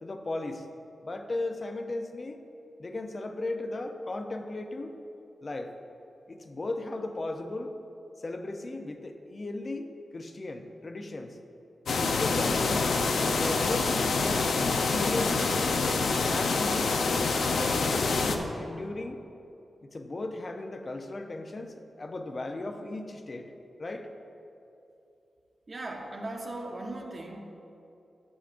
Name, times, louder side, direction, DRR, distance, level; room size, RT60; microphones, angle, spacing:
voice 1, 0.0-0.6 1.0-2.4 2.8-5.0 5.4-5.7 6.3-7.7 8.2-9.9 10.1-11.4 12.0-14.5 14.8-15.7 16.2-17.0 17.5-19.2 19.8-23.5 23.8-24.1, left 2 dB, 35° left, 6 dB, 0.6 m, -36 dB
sound 1, 11.9-18.4, left 4 dB, 85° left, 0.6 m, -26 dB
voice 2, 25.7-27.4, right 2 dB, 40° right, 0 dB, 1.0 m, -38 dB
13.5 x 7.4 x 2.5 m, 2.8 s
wide cardioid pair, 110°, 0 cm